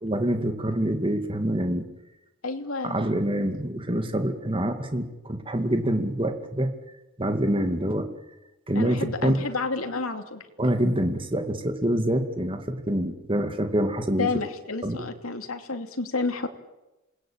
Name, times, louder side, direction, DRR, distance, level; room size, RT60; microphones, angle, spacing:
voice 1, 0.0-1.9 2.8-6.7 7.2-8.1 8.7-9.4 10.6-14.3 14.8-15.1, right 1 dB, 25° right, 6 dB, 2.4 m, -26 dB
voice 2, 2.4-3.0 8.7-10.4 14.2-16.5, left 3 dB, 90° left, 6 dB, 2.9 m, -30 dB
27.5 x 20.0 x 8.8 m, 1.0 s
head